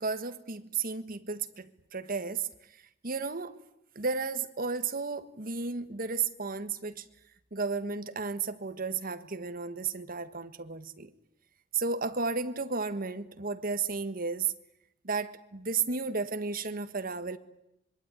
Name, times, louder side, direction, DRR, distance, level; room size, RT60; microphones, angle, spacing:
voice 1, 0.0-2.5 3.0-3.6 3.9-7.1 7.5-11.1 11.7-14.5 15.0-17.4, right 4 dB, 50° right, 1.6 m, -33 dB
25.5 x 23.5 x 9.8 m
head